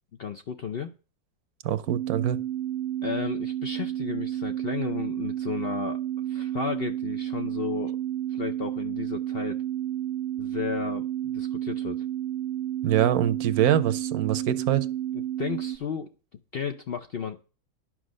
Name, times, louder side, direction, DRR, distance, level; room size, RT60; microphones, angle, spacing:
voice 1, 0.2-0.9 3.0-6.0 6.3-8.0 8.3-9.6 10.4-12.0 15.1-16.1 16.5-17.4, left 7 dB, 60° left, 0.6 m, -33 dB
voice 2, 1.6-2.4 12.8-14.9, right 11 dB, 75° right, 1.2 m, -24 dB
sound 1, 1.9-15.8, right 12 dB, 60° right, 0.9 m, -31 dB
10.5 x 6.2 x 6.3 m
omnidirectional pair, 1.6 m